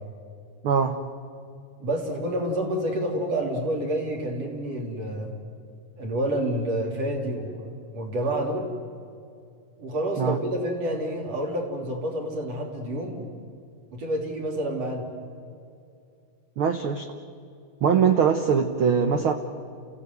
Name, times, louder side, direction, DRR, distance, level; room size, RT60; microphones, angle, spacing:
voice 1, 0.6-1.0 10.2-10.4 16.6-17.1 17.8-19.3, right 7 dB, 80° right, 7 dB, 1.2 m, -22 dB
voice 2, 1.8-5.3 6.0-8.7 9.8-13.3 13.9-15.1, right 1 dB, 50° right, 0 dB, 4.2 m, -28 dB
29.0 x 15.5 x 9.6 m, 2.4 s
omnidirectional pair, 3.8 m